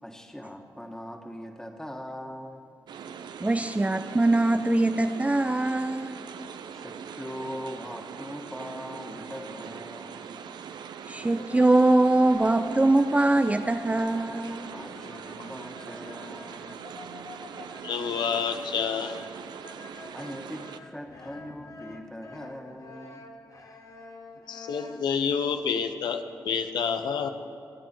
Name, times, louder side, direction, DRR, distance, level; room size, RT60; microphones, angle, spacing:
voice 1, 0.0-2.6 6.7-10.4 14.7-16.9 20.1-23.3, equal, 5° left, 3 dB, 1.9 m, -41 dB
sound 1, 2.9-20.8, right 7 dB, 75° right, 0.6 m, -42 dB
voice 2, 3.4-6.2 11.1-14.7, right 2 dB, 20° right, 9 dB, 0.5 m, -22 dB
sound 2, 11.2-25.4, left 3 dB, 50° left, 1.5 m, -48 dB
voice 3, 17.8-19.2 24.5-27.3, left 6 dB, 75° left, 7 dB, 0.8 m, -28 dB
24.5 x 9.1 x 4.6 m, 2.4 s
supercardioid pair, 45°, 8 cm